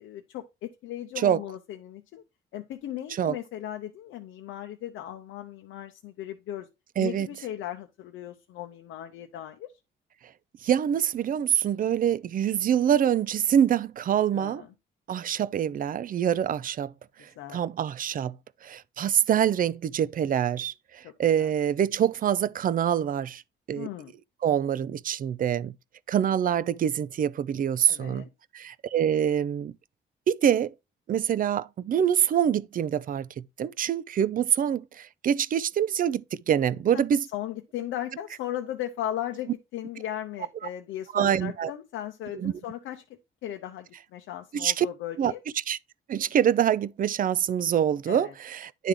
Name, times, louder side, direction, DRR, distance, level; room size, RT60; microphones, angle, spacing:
voice 1, 0.0-2.2 2.5-6.7 7.0-9.7 14.3-14.7 17.4-17.6 21.0-21.1 21.4-21.5 23.7-24.1 27.9-28.3 36.9-37.0 37.3-43.0 43.4-45.4 48.1-48.3, left 12 dB, 85° left, 0.7 m, -37 dB
voice 2, 7.0-7.3 10.6-14.6 15.1-16.9 17.2-18.4 18.6-23.4 23.7-23.9 24.4-25.7 26.1-28.3 28.5-29.7 30.3-30.7 31.1-37.3 41.1-41.7 42.3-42.5 44.5-44.9 45.2-45.3 45.7-45.8 46.1-48.9, right 9 dB, 45° right, 0.4 m, -25 dB
10.0 x 3.4 x 3.6 m
cardioid pair, 90°, 20 cm